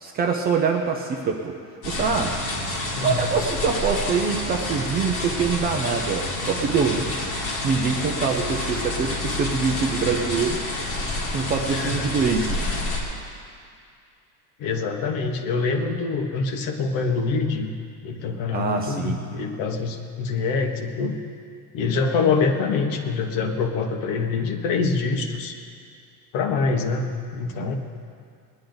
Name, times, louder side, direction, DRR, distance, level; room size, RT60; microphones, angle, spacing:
voice 1, 0.0-1.5 1.8-2.3 3.0-7.1 7.6-10.6 11.3-12.6 18.5-19.2 27.6-27.7, right 5 dB, 20° right, 3 dB, 0.5 m, -24 dB
sound 1, 1.8-13.0, left 2 dB, 35° left, 2.4 m, -28 dB
voice 2, 2.9-3.3 11.2-11.4 11.7-12.1 14.6-17.7 18.0-21.2 21.7-25.5 26.3-27.8, left 4 dB, 50° left, 3 dB, 1.4 m, -25 dB
20.5 x 10.5 x 3.9 m, 2.3 s
cardioid pair, 175°, 42 cm